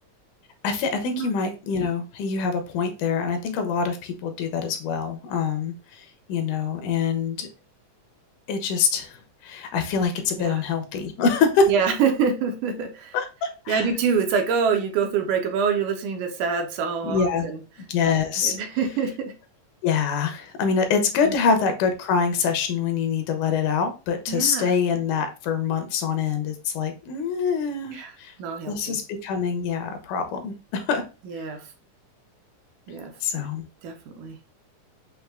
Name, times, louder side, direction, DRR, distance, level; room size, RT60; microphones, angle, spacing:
voice 1, 0.6-7.5 8.5-11.7 13.1-13.9 17.0-17.5 17.9-18.6 19.8-28.3 28.6-31.0 33.2-33.7, left 5 dB, 80° left, 6 dB, 2.0 m, -25 dB
voice 2, 11.7-13.2 13.7-17.6 18.4-19.3 21.2-21.3 24.3-24.7 27.9-28.1 28.4-29.0 31.3-31.6 32.9-33.1 33.4-33.5 33.8-34.4, right 6 dB, 75° right, 4 dB, 2.1 m, -25 dB
6.4 x 2.6 x 2.2 m, 0.32 s
omnidirectional pair, 3.8 m